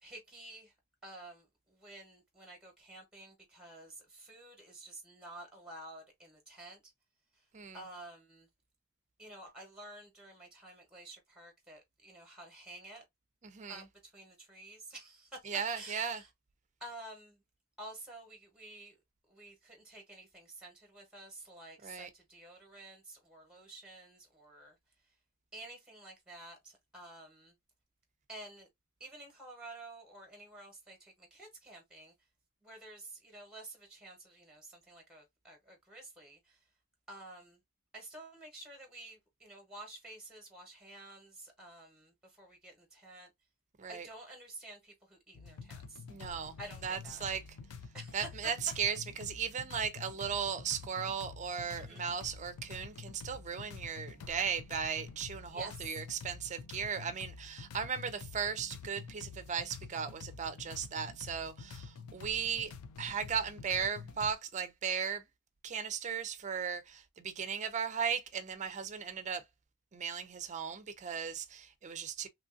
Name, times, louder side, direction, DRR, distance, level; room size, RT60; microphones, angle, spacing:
voice 1, 0.0-0.7 1.0-6.8 7.7-8.5 9.2-13.0 13.7-15.4 15.7-16.3 16.8-17.4 17.8-19.0 19.3-24.7 25.5-27.5 28.3-28.7 29.0-32.1 32.6-36.6 37.1-37.6 37.9-43.3 43.9-46.0 46.6-47.2 47.9-48.2 51.8-52.0 55.5-55.7, right 1 dB, 5° right, 0.9 m, -51 dB
voice 2, 7.5-7.8 13.4-13.9 15.4-16.2 21.8-22.1 43.8-44.1 46.1-46.6 46.8-47.6 48.1-62.7 63.0-65.2 65.6-69.4 69.9-72.3, right 7 dB, 30° right, 0.4 m, -37 dB
sound 1, 45.3-64.3, left 5 dB, 90° left, 0.4 m, -48 dB
3.1 x 2.5 x 2.4 m
head